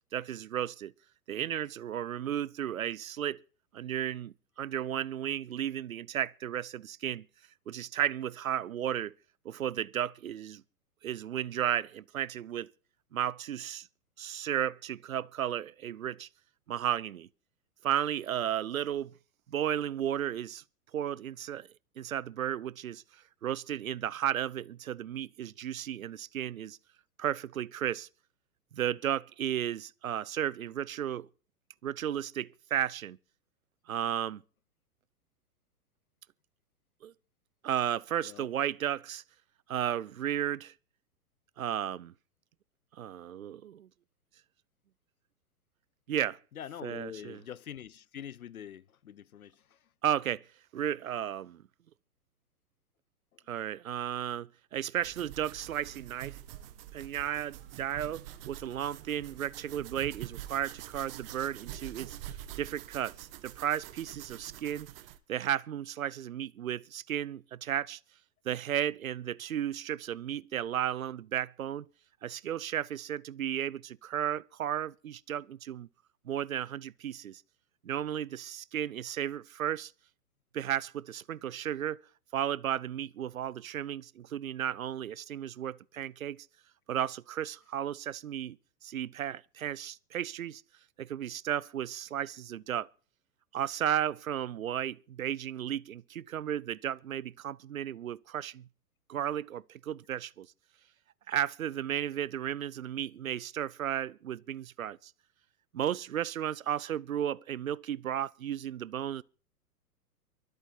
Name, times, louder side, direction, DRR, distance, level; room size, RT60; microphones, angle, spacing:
voice 1, 0.1-0.9 1.3-3.4 3.7-7.3 7.7-9.1 9.4-10.6 11.0-12.7 13.1-13.9 14.2-16.3 16.7-17.3 17.8-19.1 19.5-20.6 20.9-21.7 22.0-23.0 23.4-26.8 27.2-28.1 28.7-31.3 31.8-33.2 33.9-34.4 37.0-37.1 37.6-39.2 39.7-40.7 41.6-42.1 42.9-43.9 46.1-46.4 46.8-47.4 50.0-50.4 50.7-51.6 53.5-56.4 56.9-64.9 65.3-68.0 68.4-71.9 72.2-75.9 76.2-77.4 77.8-79.9 80.5-82.0 82.3-86.5 86.9-88.6 88.8-90.6 91.0-92.9 93.5-98.7 99.1-100.5 101.3-105.1 105.7-109.2, right 10 dB, 60° right, 0.8 m, -34 dB
voice 2, 46.5-49.8, left 9 dB, 60° left, 0.8 m, -44 dB
sound 1, 55.0-65.2, right 13 dB, 35° right, 1.4 m, -46 dB
24.0 x 8.6 x 4.3 m
figure-of-eight pair, 110°, 48 cm